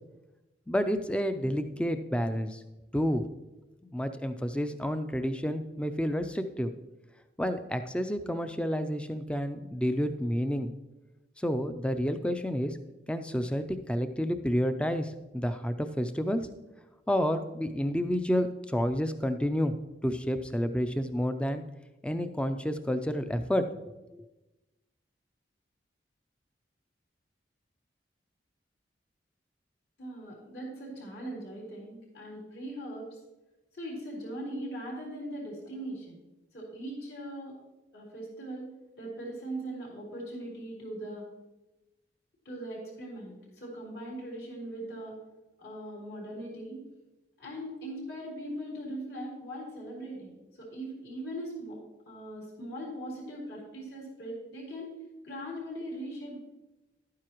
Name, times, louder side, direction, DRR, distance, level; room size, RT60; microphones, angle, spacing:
voice 1, 0.7-2.6 2.9-3.3 3.8-6.7 7.4-10.7 11.4-12.8 13.1-16.5 17.1-19.7 20.0-21.6 22.0-23.7 24.1-24.2, equal, 5° left, 9 dB, 0.4 m, -30 dB
voice 2, 30.0-33.2 33.7-36.2 36.5-37.6 37.9-41.3 42.5-45.2 45.6-46.8 47.4-51.8 52.1-54.9 55.2-56.4, right 1 dB, 65° left, -4 dB, 3.7 m, -40 dB
12.0 x 9.6 x 3.0 m, 1.0 s
head